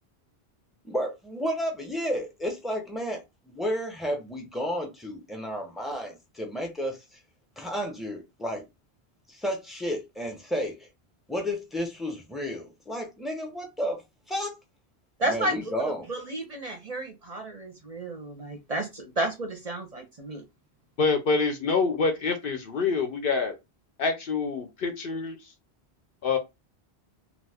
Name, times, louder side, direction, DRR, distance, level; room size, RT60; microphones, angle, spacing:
voice 1, 0.8-7.0 7.6-8.6 9.3-10.9 11.3-14.0 14.3-14.6 15.2-16.0, equal, ahead, 0.6 m, -32 dB
voice 2, 15.2-15.6 16.1-20.4, right 1 dB, 40° right, 0.7 m, -32 dB
voice 3, 21.0-23.5 24.0-25.4 26.2-26.4, left 4 dB, 60° left, 0.8 m, -26 dB
2.4 x 2.4 x 3.4 m
omnidirectional pair, 1.1 m